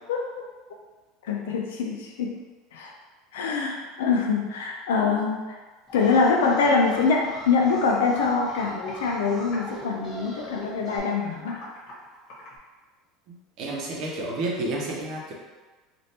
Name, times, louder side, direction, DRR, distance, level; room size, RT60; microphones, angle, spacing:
voice 1, 1.2-2.4 2.7-2.9 3.3-5.6 5.9-11.6, left 4 dB, 90° left, 1 dB, 0.4 m, -24 dB
Computer keyboard, 5.9-6.3 6.6-8.2 8.5-9.3 9.5-9.9 10.2-12.6, left 1 dB, 55° left, 1.4 m, -45 dB
Alarm, 5.9-11.0, equal, 25° left, 1.3 m, -40 dB
voice 2, 13.3-15.3, right 2 dB, 55° right, -3 dB, 0.8 m, -31 dB
3.3 x 2.5 x 2.8 m, 1.3 s
supercardioid pair, 100°, 0 cm